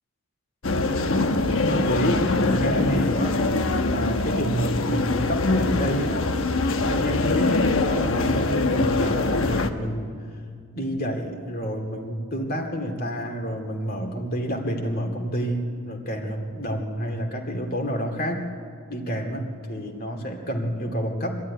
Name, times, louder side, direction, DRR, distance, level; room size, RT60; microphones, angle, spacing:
Office ambience, 0.6-9.7, left 2 dB, 60° left, 1.1 m, -23 dB
voice 1, 1.4-3.4 3.8-6.2 6.7-10.1 10.7-18.4 18.9-21.4, equal, 40° left, 2 dB, 2.4 m, -29 dB
24.0 x 13.0 x 9.8 m, 2.2 s
head